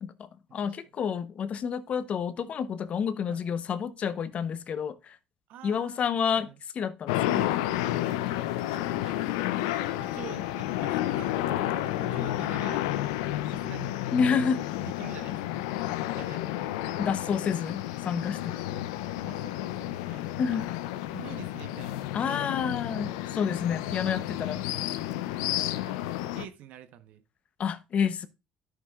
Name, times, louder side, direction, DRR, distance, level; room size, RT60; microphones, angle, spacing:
voice 1, 0.0-5.2 5.6-6.5 6.7-7.5 14.1-14.6 17.0-18.6 20.4-20.7 22.1-24.7 27.6-28.3, left 7 dB, 50° left, 0.8 m, -29 dB
voice 2, 5.5-6.6 8.7-9.3 10.0-13.1 13.5-14.0 14.8-15.6 16.1-16.7 19.3-20.6 21.1-22.7 24.7-25.0 25.6-26.0 26.4-27.2, right 10 dB, 70° right, 1.0 m, -47 dB
sound 1, 7.1-26.5, left 14 dB, 85° left, 0.5 m, -31 dB
sound 2, 16.6-26.2, left 8 dB, 65° left, 1.6 m, -54 dB
12.0 x 6.6 x 2.4 m
supercardioid pair, 70°, 3 cm